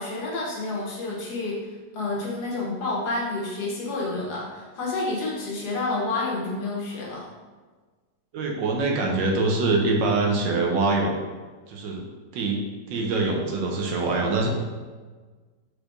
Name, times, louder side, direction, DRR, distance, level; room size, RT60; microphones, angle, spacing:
voice 1, 0.0-1.6 1.9-7.3, left 2 dB, 65° left, -3 dB, 1.4 m, -29 dB
voice 2, 8.3-11.1 11.7-12.0 12.3-12.6 12.9-14.5, right 3 dB, 80° right, 0 dB, 1.4 m, -24 dB
4.7 x 4.3 x 2.5 m, 1.4 s
omnidirectional pair, 2.0 m